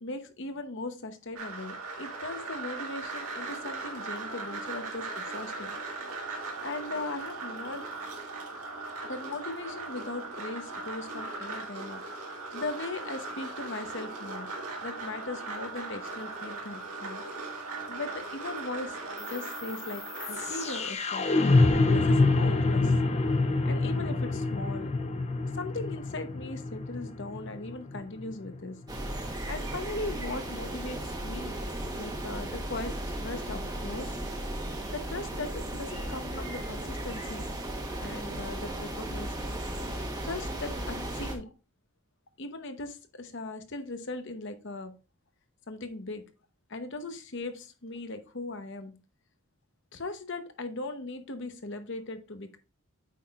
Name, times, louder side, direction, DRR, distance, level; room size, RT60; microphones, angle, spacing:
voice 1, 0.0-5.8 6.6-7.8 9.0-12.0 12.5-14.5 14.8-19.0 19.3-20.0 20.3-21.3 21.8-22.9 23.6-24.9 25.5-28.8 29.5-31.6 32.0-34.2 34.9-37.5 38.0-39.4 40.2-41.5 42.4-44.9 45.7-46.2 46.7-49.0 49.9-52.6, left 2 dB, 55° left, 8 dB, 0.9 m, -39 dB
sound 1, 1.4-20.9, right 3 dB, 80° right, 1.8 m, -39 dB
sound 2, 19.2-29.2, left 3 dB, 30° left, 0.5 m, -27 dB
sound 3, 28.9-41.4, right 1 dB, 15° right, 1.1 m, -36 dB
8.4 x 5.7 x 2.4 m, 0.32 s
head